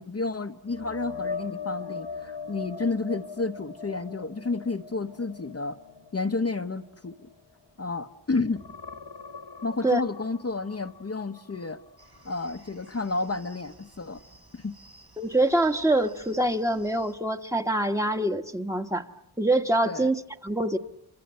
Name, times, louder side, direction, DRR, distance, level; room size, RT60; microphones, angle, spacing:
voice 1, 0.0-5.8 6.1-7.1 7.8-8.6 9.6-11.8 12.2-14.2 14.5-14.8 19.8-20.1, left 3 dB, 35° left, 1.1 m, -31 dB
sound 1, 0.7-8.1 8.4-12.3 12.7-12.9 16.2-16.3, left 5 dB, 80° left, 1.5 m, -41 dB
sound 2, 12.0-17.2, right 2 dB, 65° right, 5.0 m, -55 dB
voice 2, 15.2-19.1 19.4-20.8, right 1 dB, 5° right, 1.5 m, -25 dB
28.0 x 26.0 x 7.8 m
cardioid pair, 45°, 41 cm